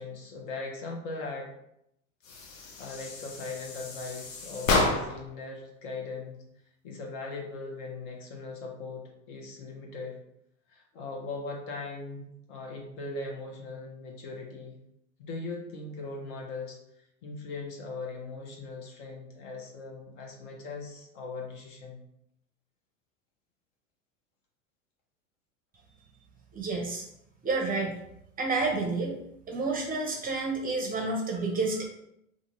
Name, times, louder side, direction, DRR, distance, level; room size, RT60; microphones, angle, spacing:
voice 1, 0.0-1.5 2.6-6.4 6.8-10.2 10.7-14.8 15.2-16.8 17.2-22.0, left 3 dB, 60° left, 0 dB, 0.9 m, -39 dB
sound 1, 2.2-5.3, left 3 dB, 80° left, 0.7 m, -30 dB
voice 2, 26.5-27.0 27.4-27.9 28.4-29.2 29.5-31.9, right 3 dB, 20° right, 1 dB, 0.6 m, -29 dB
2.6 x 2.5 x 2.9 m, 0.78 s
hypercardioid pair, 90°, 39 cm